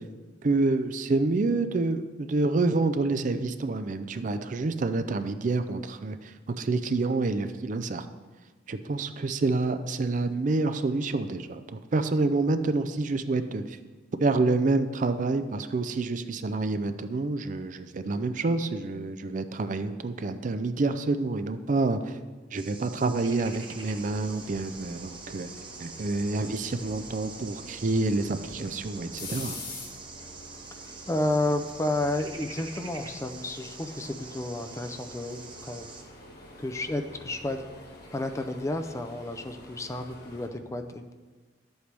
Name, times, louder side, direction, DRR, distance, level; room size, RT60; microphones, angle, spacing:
voice 1, 0.4-8.1 8.7-11.6 11.9-13.8 14.2-22.2 22.5-25.5 25.8-29.6, right 3 dB, 45° right, 10 dB, 0.4 m, -28 dB
sound 1, 22.5-36.0, right 5 dB, 25° right, 0.8 m, -45 dB
sound 2, 23.4-40.5, left 2 dB, 55° left, 1.6 m, -46 dB
voice 2, 31.1-35.9 36.6-37.6 38.1-41.1, left 1 dB, 15° left, 6 dB, 0.5 m, -31 dB
11.0 x 8.0 x 3.4 m, 1.3 s
head